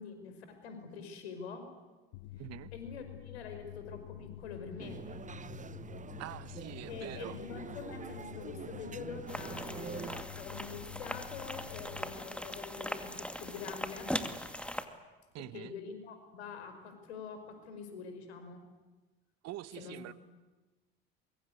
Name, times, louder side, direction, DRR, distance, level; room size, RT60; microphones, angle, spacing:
voice 1, 0.0-1.6 2.7-5.0 6.9-14.1 15.5-18.6 19.8-20.1, left 6 dB, 80° left, 7 dB, 5.1 m, -45 dB
sound 1, 2.1-12.1, left 13 dB, 65° left, 1.0 m, -48 dB
voice 2, 2.4-2.7 6.2-7.4 15.3-15.7 19.4-20.1, right 15 dB, 55° right, 16 dB, 1.3 m, -45 dB
sound 2, 4.8-10.2, right 6 dB, 25° right, 1.1 m, -45 dB
sound 3, 9.3-14.8, left 1 dB, 5° left, 2.3 m, -40 dB
24.5 x 22.5 x 9.7 m, 1.2 s
hypercardioid pair, 70°, 32 cm